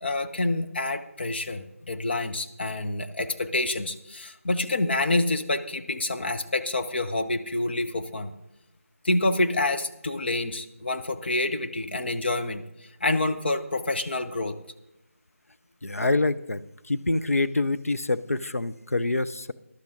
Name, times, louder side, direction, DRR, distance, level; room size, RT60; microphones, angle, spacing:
voice 1, 0.0-8.3 9.0-12.6 13.0-14.6, left 2 dB, 45° left, 6 dB, 0.9 m, -27 dB
voice 2, 15.8-16.6 16.9-19.5, left 2 dB, 70° left, 11 dB, 0.7 m, -26 dB
14.0 x 11.5 x 3.8 m, 0.90 s
figure-of-eight pair, 160°, 8 cm